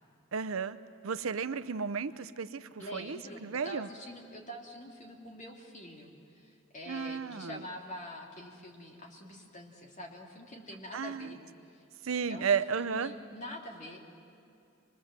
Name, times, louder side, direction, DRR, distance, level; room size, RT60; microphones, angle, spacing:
voice 1, 0.3-0.8 1.0-3.9 6.9-7.6 10.9-11.4 12.0-13.1, right 6 dB, 80° right, 12 dB, 0.7 m, -33 dB
voice 2, 2.8-11.4 11.7-11.8 12.3-14.1, equal, 35° left, 1 dB, 2.8 m, -46 dB
25.5 x 22.0 x 7.5 m, 2.4 s
head